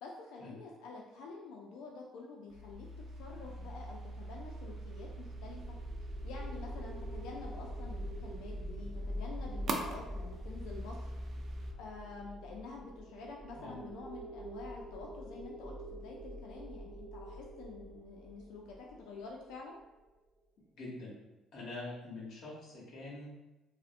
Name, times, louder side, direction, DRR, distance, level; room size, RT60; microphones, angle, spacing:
voice 1, 0.0-2.9 3.2-5.8 6.2-11.0 11.8-19.8, left 4 dB, 85° left, -1 dB, 0.3 m, -48 dB
sound 1, 2.5-11.7, right 2 dB, 45° right, 0.3 m, -43 dB
sound 2, 4.9-19.8, equal, 25° right, 0.8 m, -45 dB
voice 2, 20.7-21.2 21.5-23.3, left 2 dB, 60° left, -5 dB, 0.7 m, -45 dB
2.4 x 2.0 x 2.5 m, 1.0 s
cardioid pair, 110°, 0 cm